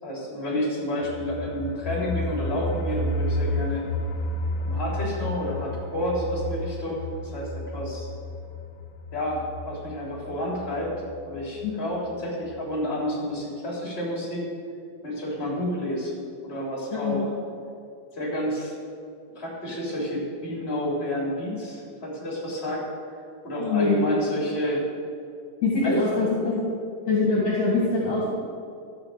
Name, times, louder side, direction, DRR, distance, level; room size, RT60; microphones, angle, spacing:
voice 1, 0.0-3.8 4.6-7.0 7.3-8.1 9.1-10.9 11.2-14.4 15.0-16.1 16.4-17.2 18.1-18.7 19.3-22.9 23.4-24.8 25.8-26.3, equal, 15° left, -3 dB, 3.2 m, -30 dB
sound 1, 1.0-11.7 12.0-12.1 12.5-12.6, left 1 dB, 85° left, 2.7 m, -32 dB
voice 2, 23.6-24.0 25.6-26.7 27.1-28.3, left 3 dB, 55° left, -4 dB, 2.8 m, -23 dB
13.0 x 6.4 x 7.8 m, 2.5 s
omnidirectional pair, 4.3 m